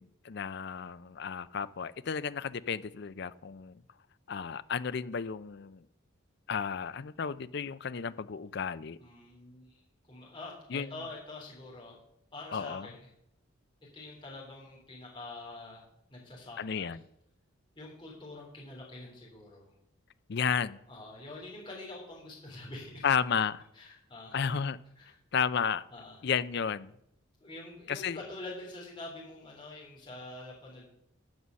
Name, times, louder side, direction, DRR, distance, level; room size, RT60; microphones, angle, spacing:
voice 1, 0.0-3.8 4.3-5.8 6.5-9.0 10.7-10.9 12.5-12.9 16.6-17.0 20.3-20.8 23.0-23.6 24.3-24.8 25.3-25.8 26.2-26.9 27.9-28.2, left 6 dB, 50° left, 14 dB, 0.4 m, -32 dB
voice 2, 9.0-9.8 10.1-12.0 12.3-13.1 13.9-15.8 16.1-16.9 17.7-19.6 20.9-23.1 23.7-24.4 25.0-25.2 25.9-26.2 27.4-30.9, left 2 dB, 20° left, -4 dB, 3.4 m, -45 dB
14.0 x 5.6 x 6.3 m, 0.77 s
head